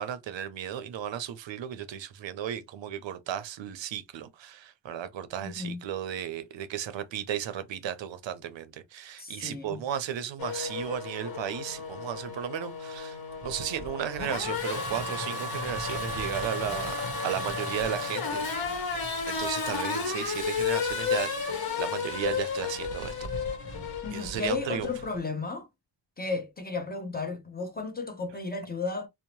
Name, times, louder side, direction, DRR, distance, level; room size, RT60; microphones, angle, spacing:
voice 1, 0.0-13.2 13.4-18.5 19.3-23.3 24.1-24.9, right 10 dB, 80° right, 0.5 m, -35 dB
voice 2, 5.4-5.8 9.2-9.8 24.0-25.7 26.2-29.1, left 4 dB, 20° left, 0.7 m, -34 dB
Race car auto racing / Accelerating revving vroom, 10.4-25.2, left 4 dB, 55° left, 1.0 m, -33 dB
2.7 x 2.0 x 2.9 m
cardioid pair, 80°, 44 cm